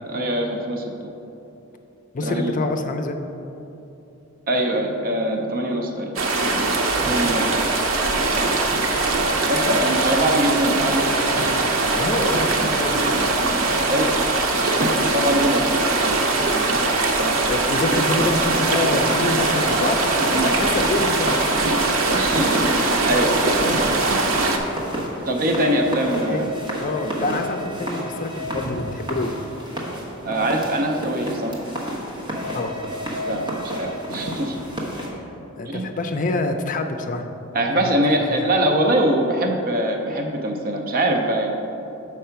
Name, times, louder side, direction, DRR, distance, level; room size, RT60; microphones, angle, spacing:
voice 1, 0.1-0.9 2.2-2.5 4.5-6.1 7.0-7.5 9.5-11.0 13.7-14.2 14.6-15.8 17.1-17.3 20.3-20.5 22.1-24.1 25.3-26.5 27.2-27.4 30.2-31.6 33.1-34.7 35.7-35.9 37.5-41.5, right 1 dB, 45° right, 3 dB, 0.6 m, -23 dB
voice 2, 2.1-3.2 7.0-7.2 11.9-13.2 16.3-16.7 17.4-21.5 26.1-29.3 32.5-32.8 35.6-37.3 37.8-38.0 38.3-38.5, left 2 dB, 40° left, 6 dB, 0.5 m, -27 dB
sound 1, 6.2-24.6, right 3 dB, 85° right, 0.7 m, -21 dB
sound 2, 17.4-35.1, equal, 25° right, 1.1 m, -31 dB
6.6 x 4.8 x 5.7 m, 2.9 s
head